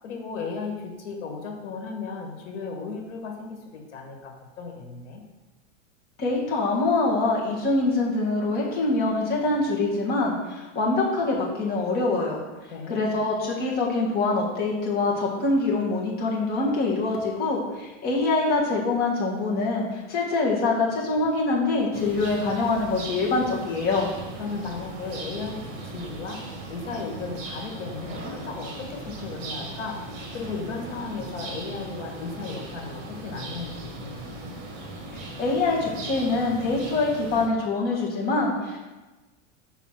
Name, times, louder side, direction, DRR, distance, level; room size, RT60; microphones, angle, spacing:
voice 1, 0.0-5.2 12.7-13.2 24.4-25.6 25.9-26.4 26.7-30.0 30.3-34.3, left 4 dB, 75° left, 2 dB, 1.8 m, -35 dB
voice 2, 6.2-12.4 12.9-24.1 35.1-38.8, left 3 dB, 25° left, -3 dB, 1.6 m, -24 dB
sound 1, 21.9-37.5, right 2 dB, 45° right, 1.5 m, -38 dB
5.6 x 4.1 x 6.0 m, 1.2 s
supercardioid pair, 160°, 36 cm